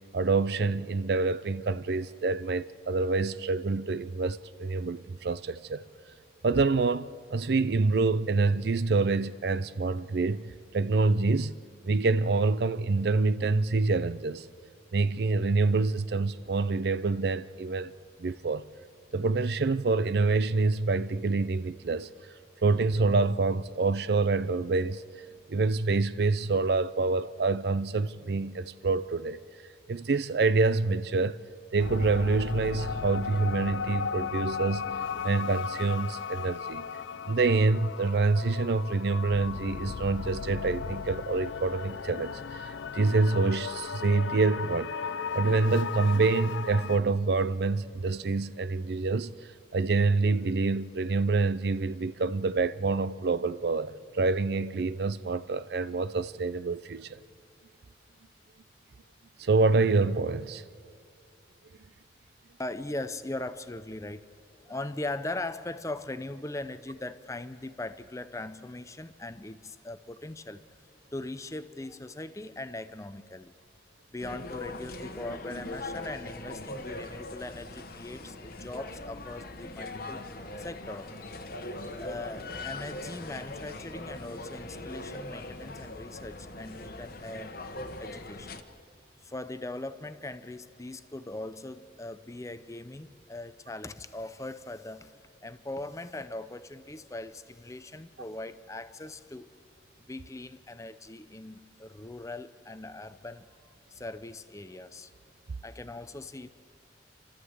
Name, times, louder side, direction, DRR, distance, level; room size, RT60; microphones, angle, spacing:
voice 1, 0.1-5.8 6.4-11.6 11.8-14.5 14.9-17.9 18.2-18.7 19.1-22.1 22.6-25.0 25.5-29.4 29.9-31.4 31.7-34.9 35.2-36.9 37.3-44.9 45.3-49.3 49.7-57.2 59.4-60.6, right 3 dB, 55° right, 0.5 m, -26 dB
sound 1, 31.8-47.0, left 6 dB, 85° left, 0.5 m, -36 dB
voice 2, 62.6-64.3 64.6-70.6 71.1-73.5 74.1-80.2 80.6-81.1 82.0-87.6 88.0-88.6 89.2-99.5 100.1-103.5 103.9-105.1 105.6-106.5, left 2 dB, 15° left, 0.6 m, -40 dB
sound 2, 74.2-88.6, left 2 dB, 50° left, 1.1 m, -41 dB
29.0 x 13.0 x 8.0 m
head